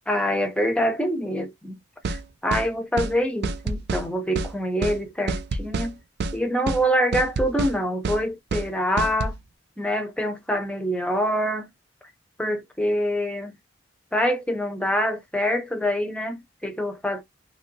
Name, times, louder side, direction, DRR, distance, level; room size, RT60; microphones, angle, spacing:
voice 1, 0.1-1.8 2.1-5.9 6.3-9.4 9.8-11.7 12.4-13.6 14.1-17.2, equal, 5° left, 0.7 m, -25 dB
sound 1, 2.0-2.2 2.5-2.7 3.0-3.1 3.4-4.1 4.4-4.5 4.8-5.0 5.3-5.9 6.2-6.4 6.7-6.8 7.1-7.7 8.0-8.2 8.5-8.7 9.0-9.4, right 3 dB, 60° right, 0.5 m, -27 dB
3.0 x 2.8 x 2.7 m
head